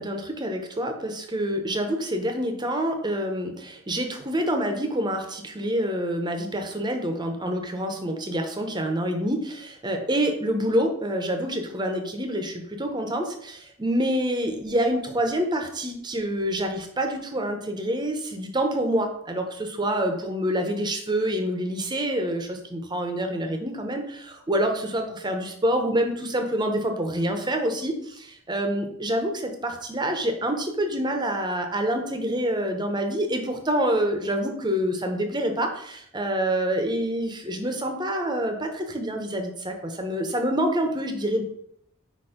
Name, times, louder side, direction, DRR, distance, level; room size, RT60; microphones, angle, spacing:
voice 1, 0.0-41.4, right 1 dB, 20° right, 5 dB, 0.8 m, -27 dB
5.1 x 4.4 x 5.0 m, 0.69 s
head